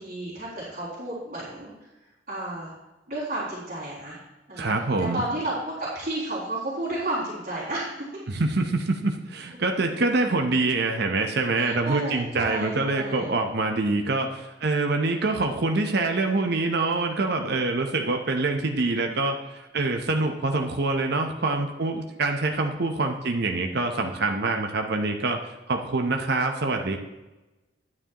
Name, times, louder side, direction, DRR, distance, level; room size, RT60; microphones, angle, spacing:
voice 1, 0.0-1.7 2.3-2.7 3.1-4.2 4.5-4.7 5.0-7.9 11.6-13.3, right 1 dB, 45° right, -11 dB, 3.5 m, -32 dB
voice 2, 4.6-5.2 8.3-25.4 25.7-27.0, right 3 dB, 60° right, 3 dB, 0.8 m, -25 dB
11.0 x 9.6 x 3.0 m, 1.1 s
head